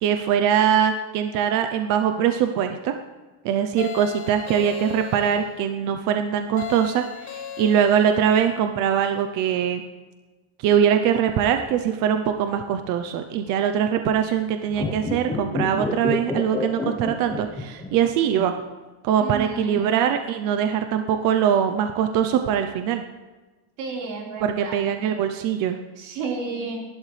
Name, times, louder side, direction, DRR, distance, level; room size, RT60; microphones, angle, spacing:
voice 1, 0.0-2.9 3.4-9.8 10.6-18.5 19.0-23.0 24.4-25.8, right 8 dB, 40° right, 7 dB, 0.7 m, -22 dB
sound 1, 3.8-5.5 6.6-8.3, left 10 dB, 50° left, 2.4 m, -36 dB
sound 2, 14.7-18.1 18.4-18.5, left 3 dB, 5° left, 0.9 m, -28 dB
voice 2, 19.2-20.0 23.8-24.8 26.0-26.8, right 4 dB, 70° right, -2 dB, 4.5 m, -32 dB
29.5 x 11.5 x 3.3 m, 1.2 s
cardioid pair, 180°, 50 cm